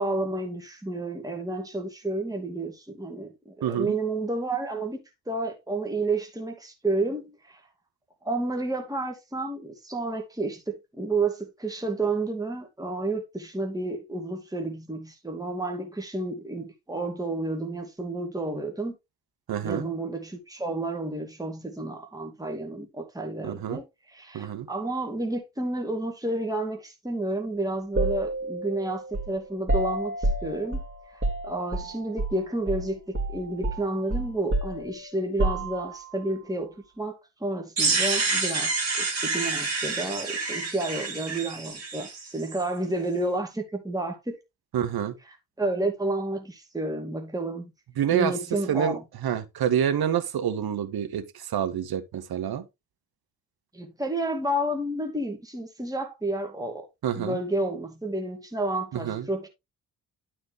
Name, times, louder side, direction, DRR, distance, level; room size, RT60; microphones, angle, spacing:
voice 1, 0.0-5.0 5.3-7.6 8.2-18.9 19.6-30.8 31.1-38.7 39.0-44.4 45.3-47.7 48.1-49.0 53.7-56.9 57.1-59.5, right 2 dB, 5° right, 2.3 m, -31 dB
voice 2, 3.6-3.9 19.5-19.9 23.4-23.8 24.3-24.7 44.7-45.1 48.0-48.3 48.7-52.6 57.0-57.4 58.9-59.3, right 9 dB, 45° right, 1.6 m, -27 dB
sound 1, 28.0-32.4 32.7-32.9 33.1-36.1, right 2 dB, 25° right, 2.9 m, -29 dB
sound 2, 37.8-42.6, right 3 dB, 90° right, 2.9 m, -28 dB
11.5 x 4.4 x 3.4 m
figure-of-eight pair, 45°, 49 cm